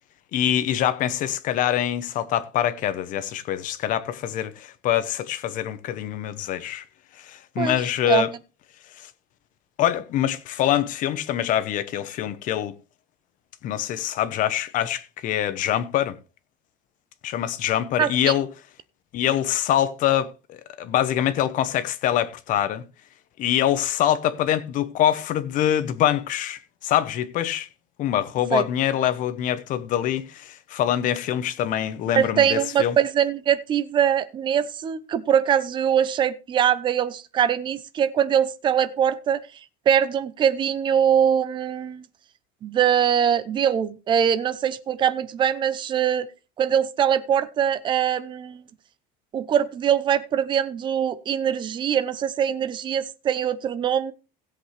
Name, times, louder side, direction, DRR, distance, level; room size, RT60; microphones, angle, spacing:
voice 1, 0.3-6.8 7.2-8.3 9.0-9.1 9.8-12.8 13.6-16.2 17.2-18.5 19.1-22.8 23.4-27.7 28.0-33.0, left 11 dB, 40° left, 1.0 m, -24 dB
voice 2, 18.0-18.3 28.5-28.6 32.2-39.4 39.9-42.0 42.6-46.3 46.6-48.6 49.3-54.1, right 9 dB, 25° right, 0.6 m, -22 dB
16.5 x 8.1 x 3.3 m
cardioid pair, 170°, 20 cm